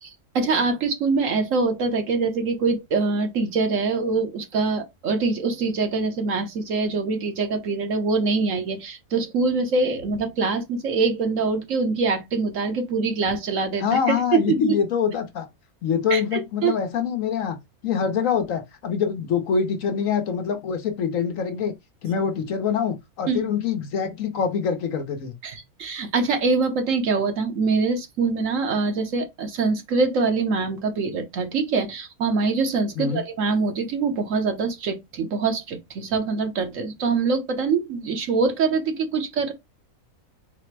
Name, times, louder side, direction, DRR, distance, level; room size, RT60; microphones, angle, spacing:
voice 1, 0.3-14.8 16.1-16.7 23.3-23.5 25.4-39.5, right 4 dB, 60° right, 1.1 m, -24 dB
voice 2, 13.8-15.5 15.8-17.6 17.8-21.7 22.0-25.3 33.0-33.2, left 7 dB, 65° left, 1.1 m, -25 dB
4.1 x 2.1 x 4.5 m
omnidirectional pair, 1.6 m